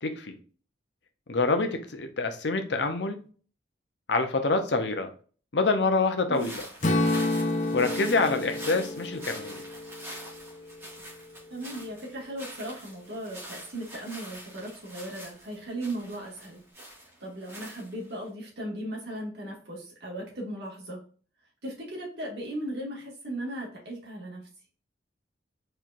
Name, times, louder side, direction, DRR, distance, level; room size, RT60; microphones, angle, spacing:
voice 1, 0.0-0.4 1.3-3.2 4.1-5.1 5.5-6.6 7.7-9.6, left 3 dB, 75° left, 7 dB, 0.8 m, -26 dB
sound 1, 6.3-18.3, equal, 15° right, 2.0 m, -45 dB
Strum, 6.8-11.0, left 2 dB, 40° left, 0.8 m, -30 dB
voice 2, 11.5-16.6 17.2-21.0 21.6-24.4, right 1 dB, 65° right, -2 dB, 2.1 m, -37 dB
4.5 x 4.4 x 2.6 m, 0.40 s
head